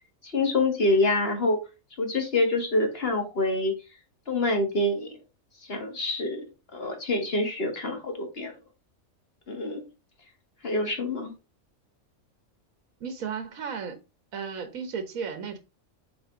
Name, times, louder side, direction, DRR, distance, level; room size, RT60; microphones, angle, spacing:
voice 1, 0.2-1.6 2.0-3.7 4.3-5.1 5.7-6.4 6.7-8.6 9.5-9.9 10.6-11.3, left 2 dB, 45° left, 2.0 m, -26 dB
voice 2, 13.0-14.0 14.3-15.6, right 6 dB, 85° right, 1.6 m, -34 dB
7.8 x 4.3 x 3.8 m
omnidirectional pair, 1.4 m